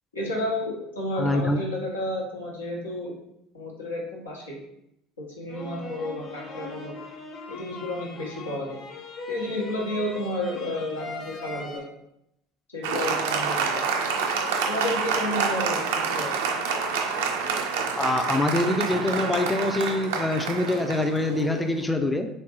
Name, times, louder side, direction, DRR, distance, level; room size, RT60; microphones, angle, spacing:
voice 1, 0.1-3.1 3.5-4.6 5.2-7.0 7.5-8.8 9.3-11.8 12.7-13.7 14.7-16.3, left 1 dB, 85° left, -4 dB, 1.0 m, -31 dB
voice 2, 1.2-1.6 18.0-22.3, left 2 dB, 10° left, 5 dB, 0.4 m, -25 dB
sound 1, 5.5-11.8, left 2 dB, 45° left, 0.7 m, -39 dB
Applause, 12.8-21.8, right 5 dB, 70° right, 0.4 m, -27 dB
3.5 x 3.2 x 2.9 m, 0.81 s
figure-of-eight pair, 65°, 0 cm